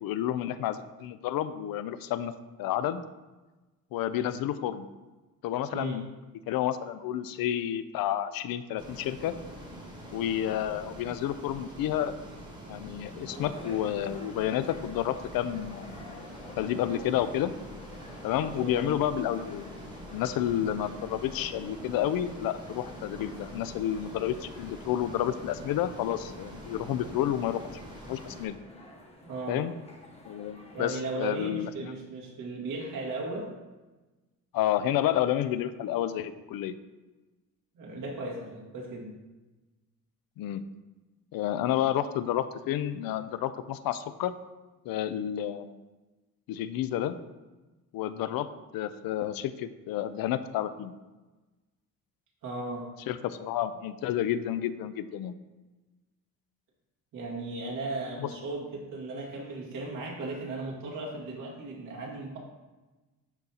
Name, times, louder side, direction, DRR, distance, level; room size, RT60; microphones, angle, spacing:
voice 1, 0.0-2.3 2.6-3.0 3.9-4.9 5.4-6.0 6.5-9.3 10.1-12.1 12.7-16.0 16.6-17.5 18.2-19.7 20.1-27.8 28.1-28.6 29.5-29.7 30.3-31.9 34.5-36.7 40.4-40.6 41.3-44.3 44.9-45.7 46.5-47.2 47.9-48.5 48.7-50.9 53.1-55.3 58.2-58.3, left 11 dB, 90° left, 12 dB, 0.5 m, -30 dB
voice 2, 5.7-6.0 18.6-18.9 29.2-29.7 30.7-33.5 37.7-39.2 52.4-52.9 57.1-62.4, right 2 dB, 70° right, -3 dB, 2.0 m, -36 dB
Ocean, 8.8-28.4, equal, 15° right, 1.1 m, -45 dB
sound 1, 13.3-31.3, left 1 dB, 20° left, 0.9 m, -50 dB
11.5 x 3.9 x 2.8 m, 1.2 s
cardioid pair, 180°, 34 cm